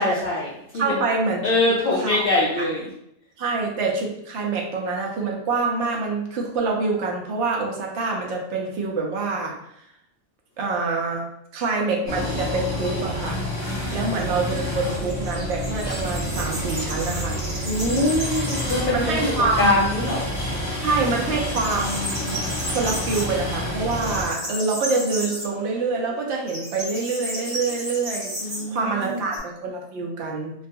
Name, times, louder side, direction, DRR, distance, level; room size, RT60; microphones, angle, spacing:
voice 1, 0.0-1.0 1.4-2.9 13.7-14.2 17.6-20.3 28.4-29.2, left 2 dB, 60° left, -5 dB, 0.6 m, -24 dB
voice 2, 0.7-1.5 1.9-2.2 3.4-9.5 10.6-11.2 11.5-13.4 13.9-17.4 18.9-19.9 20.8-22.4 22.7-28.3 28.7-30.5, right 3 dB, 70° right, 0 dB, 0.9 m, -26 dB
sound 1, 12.1-24.2, left 1 dB, 20° left, 0.6 m, -29 dB
sound 2, 13.8-19.0 19.4-19.5 19.9-20.7 20.9-29.4, equal, 40° right, 0.9 m, -34 dB
2.3 x 2.3 x 2.6 m, 0.76 s
omnidirectional pair, 1.3 m